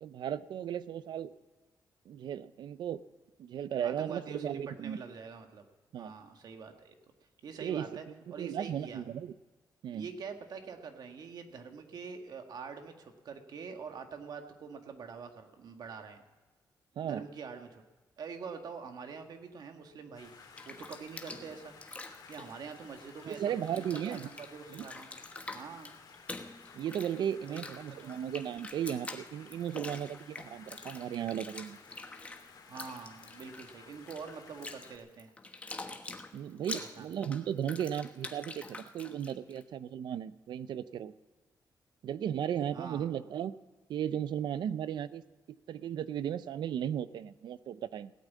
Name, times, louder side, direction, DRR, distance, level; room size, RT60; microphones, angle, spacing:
voice 1, 0.0-1.3 2.1-3.0 3.4-5.0 5.9-6.1 7.6-7.9 8.4-9.3 9.8-10.1 17.0-17.2 23.3-24.3 24.7-24.8 26.7-31.8 36.3-41.1 42.0-43.5 43.9-45.2 45.7-48.1, right 9 dB, 85° right, 15 dB, 0.5 m, -35 dB
voice 2, 3.8-5.7 6.0-7.0 7.4-8.1 8.3-9.0 9.9-16.2 17.0-17.8 18.2-21.7 22.3-23.4 23.7-25.1 25.5-25.9 27.5-27.6 27.9-28.2 32.7-35.3 36.7-37.1 42.7-43.1, right 5 dB, 65° right, 5 dB, 1.6 m, -45 dB
sound 1, 20.1-35.0, left 5 dB, 65° left, 2.6 m, -55 dB
Bathtub (filling or washing), 20.3-23.4 23.6-39.6, left 2 dB, 20° left, 1.1 m, -46 dB
17.0 x 9.1 x 8.4 m, 1.2 s
wide cardioid pair, 150°, 7 cm